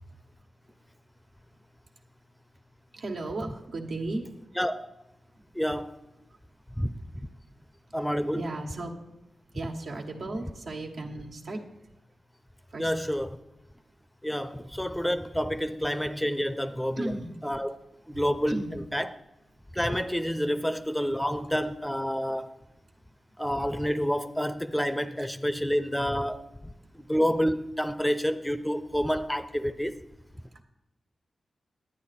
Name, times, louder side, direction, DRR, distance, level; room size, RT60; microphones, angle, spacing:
voice 1, 2.9-4.6 5.3-5.4 6.3-8.1 8.3-11.9 12.7-12.9 13.8-14.0 14.7-14.8 16.9-17.4 18.1-18.7 19.5-19.6 22.8-23.1 25.2-25.5 26.6-27.1 30.3-30.6, right 2 dB, 75° right, 1.6 m, -38 dB
voice 2, 5.6-6.0 6.8-6.9 7.9-8.4 12.8-13.3 14.2-17.1 17.4-17.8 18.1-18.6 18.9-19.1 19.7-22.5 23.4-26.4 26.9-29.9, equal, 5° left, 0.6 m, -28 dB
11.0 x 9.3 x 4.2 m
cardioid pair, 60°, 0 cm